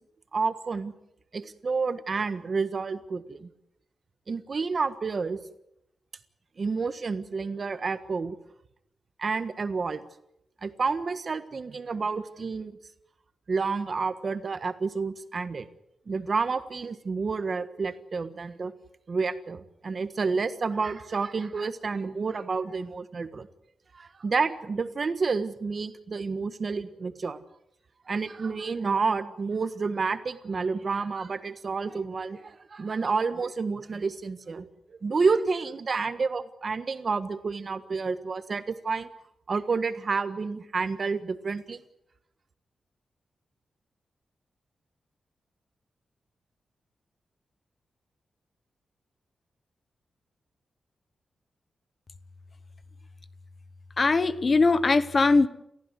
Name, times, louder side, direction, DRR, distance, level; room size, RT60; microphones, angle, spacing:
voice 1, 0.3-0.9 1.3-3.5 4.3-5.4 6.6-8.4 9.2-10.0 10.6-12.8 13.5-15.7 16.1-18.7 19.1-23.5 23.9-27.4 28.1-39.1 39.5-41.8, right 4 dB, 40° right, 11 dB, 1.5 m, -29 dB
voice 2, 54.0-55.5, left 3 dB, 35° left, 13 dB, 1.0 m, -21 dB
29.5 x 15.5 x 8.2 m, 0.81 s
wide cardioid pair, 155°, 0 cm